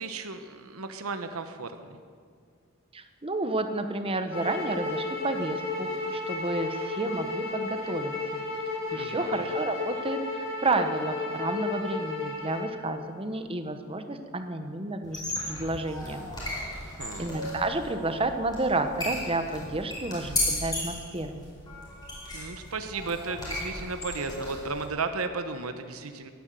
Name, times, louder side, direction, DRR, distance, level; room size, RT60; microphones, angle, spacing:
voice 1, 0.0-2.0 8.9-9.4 16.8-17.3 22.3-26.3, right 4 dB, 80° right, 8 dB, 1.0 m, -35 dB
voice 2, 2.9-8.4 8.9-16.3 17.2-21.4, right 2 dB, 25° right, 8 dB, 1.0 m, -31 dB
sound 1, 4.3-12.7, left 3 dB, 80° left, 5.7 m, -33 dB
sound 2, 15.0-24.9, left 1 dB, 20° left, 5.2 m, -35 dB
17.0 x 10.5 x 7.6 m, 2.1 s
head